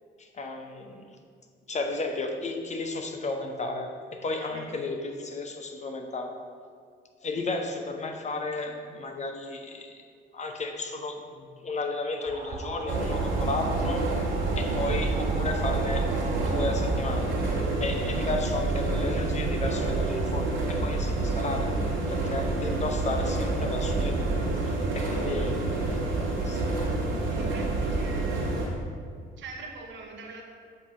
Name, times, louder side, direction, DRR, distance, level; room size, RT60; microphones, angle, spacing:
voice 1, 0.2-1.1 1.7-6.4 7.2-10.1 10.3-14.1 14.6-16.1 16.4-17.4 17.8-21.8 22.1-24.4 24.6-26.7, left 2 dB, 35° left, 4 dB, 0.8 m, -33 dB
sound 1, 12.2-17.3, right 2 dB, 40° right, 1.6 m, -37 dB
sound 2, 12.9-28.7, right 2 dB, 85° right, 1.8 m, -28 dB
voice 2, 27.3-28.6 29.4-30.4, right 4 dB, 70° right, 1 dB, 1.1 m, -43 dB
7.9 x 2.9 x 6.0 m, 2.1 s
cardioid pair, 90°, 20 cm